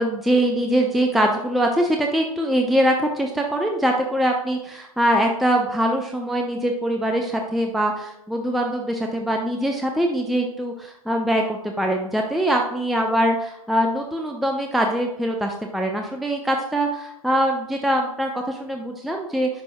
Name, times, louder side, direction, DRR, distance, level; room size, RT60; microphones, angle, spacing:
voice 1, 0.0-19.6, right 1 dB, ahead, 2 dB, 0.5 m, -23 dB
10.0 x 6.0 x 2.2 m, 0.86 s
figure-of-eight pair, 100°, 19 cm